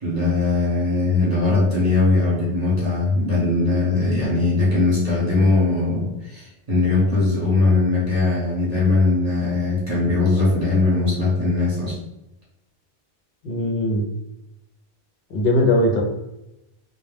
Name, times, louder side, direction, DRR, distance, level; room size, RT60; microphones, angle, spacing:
voice 1, 0.0-12.0, left 3 dB, 40° right, -7 dB, 1.0 m, -20 dB
voice 2, 13.4-14.1 15.3-16.0, left 1 dB, 75° left, 0 dB, 0.8 m, -20 dB
2.1 x 2.1 x 3.1 m, 0.90 s
omnidirectional pair, 1.0 m